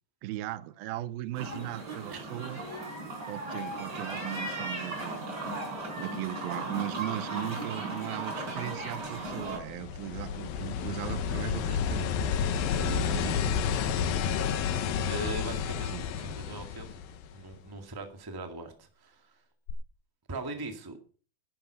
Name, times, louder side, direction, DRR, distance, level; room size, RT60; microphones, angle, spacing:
voice 1, 0.2-2.6 3.3-5.6 6.0-12.2 12.7-13.5 15.9-16.1, right 15 dB, 85° right, 2.6 m, -38 dB
sound 1, 1.3-9.6, right 2 dB, 25° right, 5.1 m, -36 dB
sound 2, 9.1-17.5 19.7-19.8, left 7 dB, 75° left, 2.7 m, -31 dB
voice 2, 15.1-17.0 17.3-19.4 20.3-21.0, right 2 dB, 10° right, 1.0 m, -40 dB
11.5 x 11.5 x 5.7 m
omnidirectional pair, 4.2 m